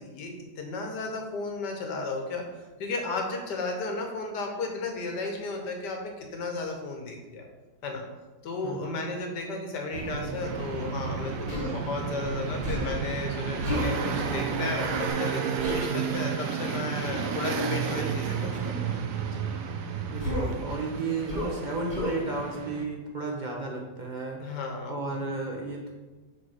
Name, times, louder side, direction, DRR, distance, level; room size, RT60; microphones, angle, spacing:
voice 1, 0.0-2.4 2.8-7.5 7.8-8.0 8.4-18.5 19.3-19.4 24.4-25.2, left 3 dB, 70° left, 2 dB, 1.7 m, -34 dB
voice 2, 8.6-9.0 20.1-24.4 24.9-25.9, right 3 dB, 35° right, -1 dB, 0.9 m, -33 dB
sound 1, 9.9-15.1, right 4 dB, 85° right, 1.4 m, -35 dB
sound 2, 10.4-22.8, right 7 dB, 65° right, 0.9 m, -32 dB
Human voice, 11.5-11.7 12.6-13.0 13.6-13.9 15.6-15.8 17.0-17.3 18.5-18.8 20.2-20.6 21.3-21.6 21.9-22.2, left 1 dB, 25° left, 1.4 m, -32 dB
4.9 x 4.8 x 6.2 m, 1.2 s
omnidirectional pair, 1.9 m